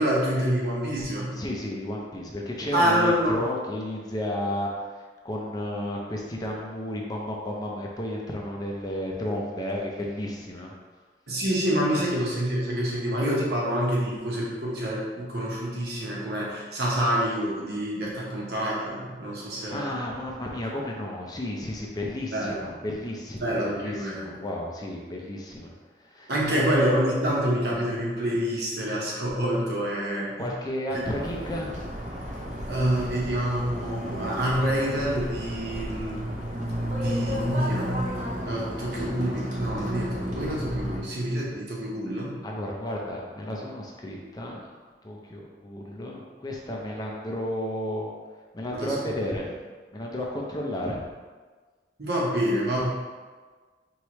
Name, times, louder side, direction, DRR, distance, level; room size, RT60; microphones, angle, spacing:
voice 1, 0.0-1.3 2.7-3.4 11.3-19.9 22.3-22.6 23.4-24.3 26.3-30.3 32.6-36.2 37.0-38.0 38.4-42.3 48.7-49.1 52.0-52.9, equal, 60° right, -4 dB, 1.1 m, -27 dB
voice 2, 1.3-10.7 19.4-26.7 30.4-31.8 42.4-44.7 45.0-48.1 48.5-49.5 49.9-51.0, left 1 dB, 20° left, -1 dB, 0.5 m, -33 dB
sound 1, 31.0-41.0, equal, 45° right, 0.7 m, -32 dB
4.5 x 3.2 x 3.0 m, 1.4 s
head